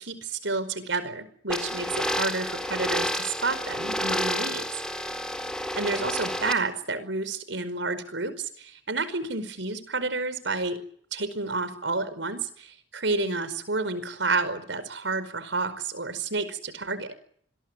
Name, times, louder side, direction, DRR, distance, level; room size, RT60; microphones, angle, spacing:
voice 1, 0.0-4.7 4.9-5.1 5.7-10.8 11.1-17.1, right 3 dB, 85° right, 13 dB, 5.0 m, -30 dB
sound 1, 1.5-6.5, equal, 5° left, 3.9 m, -30 dB
28.5 x 22.0 x 8.2 m, 0.64 s
head